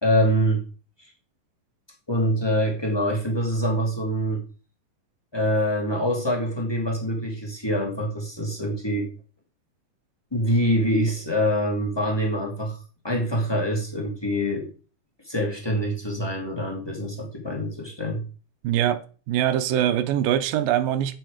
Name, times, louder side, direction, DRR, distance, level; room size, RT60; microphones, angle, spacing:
voice 1, 0.0-0.6 2.1-4.4 5.3-9.1 10.3-12.8 13.0-14.7 15.3-18.2, equal, 10° left, 1.8 m, -25 dB
voice 2, 18.6-19.0 19.3-21.2, right 11 dB, 90° right, 2.5 m, -23 dB
8.8 x 7.9 x 4.9 m
omnidirectional pair, 3.9 m